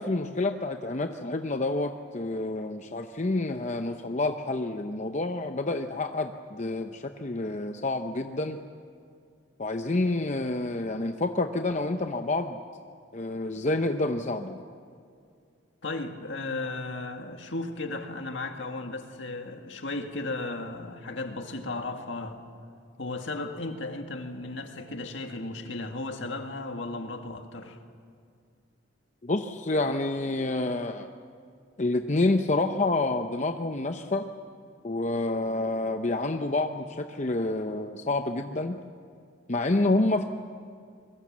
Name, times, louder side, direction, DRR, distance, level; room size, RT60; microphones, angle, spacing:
voice 1, 0.0-8.6 9.6-12.6 13.1-14.6 29.2-31.1 31.8-34.3 34.8-38.8 39.5-40.2, left 2 dB, 35° left, 6 dB, 0.7 m, -28 dB
voice 2, 15.8-22.4 23.0-27.8, left 2 dB, 65° left, 5 dB, 2.0 m, -35 dB
25.5 x 22.0 x 7.4 m, 2.3 s
head